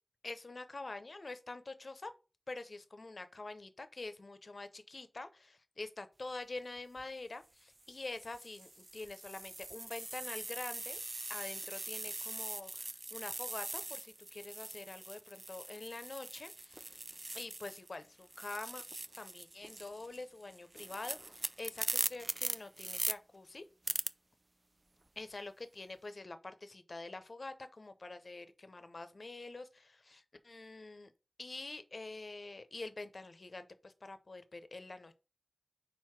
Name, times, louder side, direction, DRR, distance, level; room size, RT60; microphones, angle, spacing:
voice 1, 0.2-2.1 2.5-11.0 11.3-17.0 17.3-18.8 19.2-23.6 25.2-31.1 31.4-35.2, left 2 dB, 60° left, 0.7 m, -46 dB
sound 1, 6.8-7.0 7.8-17.9 18.2-23.1 23.9-24.1, right 2 dB, 35° right, 0.4 m, -41 dB
4.7 x 4.1 x 5.8 m
cardioid pair, 45°, 0 cm